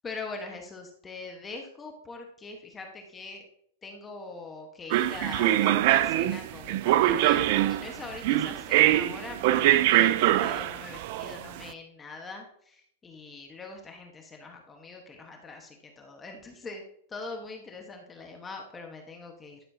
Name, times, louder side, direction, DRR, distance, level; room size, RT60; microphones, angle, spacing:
voice 1, 0.0-3.5 3.8-16.8 17.1-19.6, left 3 dB, 20° left, 2 dB, 1.4 m, -42 dB
sound 1, 4.9-11.6, right 14 dB, 55° right, 0.4 m, -23 dB
12.5 x 6.6 x 2.9 m, 0.66 s
hypercardioid pair, 115°, 0 cm